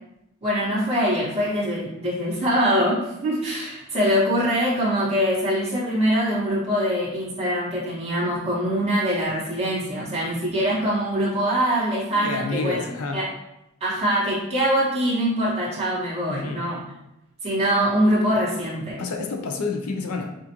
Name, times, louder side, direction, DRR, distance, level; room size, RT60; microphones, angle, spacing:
voice 1, 0.4-12.8 13.1-13.2 13.8-16.8 17.4-19.0, equal, 25° right, -8 dB, 1.5 m, -23 dB
voice 2, 12.1-13.2 16.3-16.7 19.0-20.4, left 3 dB, 80° left, 4 dB, 0.6 m, -29 dB
6.1 x 2.5 x 2.9 m, 0.87 s
head